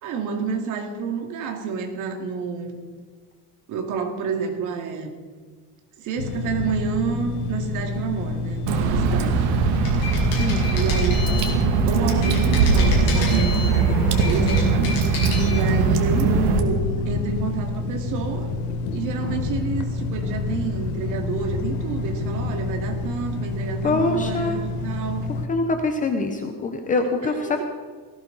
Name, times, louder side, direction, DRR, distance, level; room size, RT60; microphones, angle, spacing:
voice 1, 0.0-2.8 3.7-5.1 6.0-9.5 10.7-11.5 11.9-14.9 15.5-18.5 18.9-25.3 27.2-27.6, right 5 dB, 40° right, 3 dB, 2.3 m, -29 dB
sound 1, 6.2-25.5, left 3 dB, 50° left, 1.1 m, -28 dB
Water / Drip, 8.7-16.6, right 4 dB, 85° right, 2.3 m, -20 dB
sound 2, 9.7-11.6 12.1-13.8 14.1-15.6, left 4 dB, 35° left, 5.9 m, -32 dB
voice 2, 15.9-16.3 23.8-24.6 25.5-27.6, left 3 dB, 15° left, 5 dB, 0.8 m, -24 dB
18.5 x 15.0 x 4.0 m, 1.5 s
cardioid pair, 180°, 45 cm